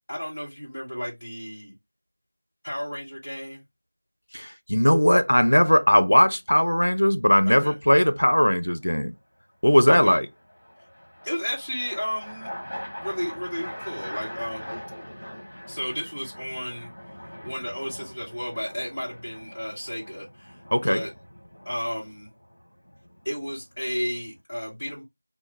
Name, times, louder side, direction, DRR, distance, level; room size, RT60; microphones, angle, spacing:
voice 1, 0.1-1.7 2.6-3.6 7.4-7.7 9.9-10.2 11.2-12.5 13.0-14.8 15.7-16.9 17.4-21.1 21.6-22.3 23.2-25.0, equal, 15° left, 1.1 m, -33 dB
voice 2, 4.3-9.1 9.6-10.3 20.7-21.0, equal, 90° left, 0.5 m, -19 dB
sound 1, 5.8-6.0 9.8-24.4, equal, 40° left, 1.4 m, -42 dB
3.0 x 2.2 x 3.3 m
figure-of-eight pair, 180°, 0 cm